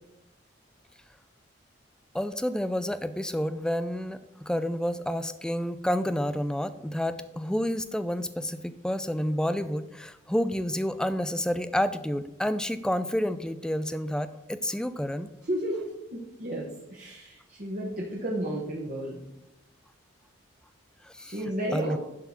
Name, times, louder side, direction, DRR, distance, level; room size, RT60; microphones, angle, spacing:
voice 1, 2.1-4.2 4.5-15.3 21.1-21.4 21.7-22.0, equal, 5° left, 12 dB, 0.3 m, -29 dB
voice 2, 15.4-19.2 21.2-22.0, right 1 dB, 40° right, -3 dB, 1.1 m, -33 dB
11.0 x 3.7 x 5.9 m, 0.92 s
head